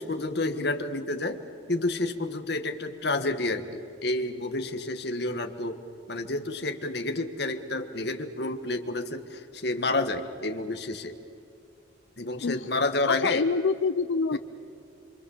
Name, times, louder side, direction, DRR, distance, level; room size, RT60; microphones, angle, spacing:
voice 1, 0.0-1.4 1.7-5.8 6.1-11.1 12.2-13.4 14.3-14.4, left 2 dB, 55° left, 7 dB, 1.6 m, -30 dB
voice 2, 13.1-14.4, left 4 dB, 75° left, 11 dB, 0.6 m, -26 dB
27.0 x 25.5 x 7.2 m, 2.6 s
head